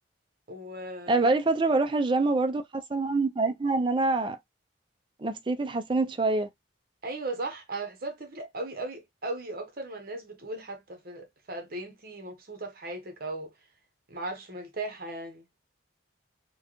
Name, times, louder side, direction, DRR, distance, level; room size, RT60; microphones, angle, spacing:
voice 1, 0.5-1.3 7.0-13.5 14.1-15.4, right 2 dB, 45° right, 0.9 m, -37 dB
voice 2, 1.1-4.4 5.2-6.5, right 3 dB, 25° right, 0.4 m, -25 dB
4.4 x 2.2 x 3.0 m
head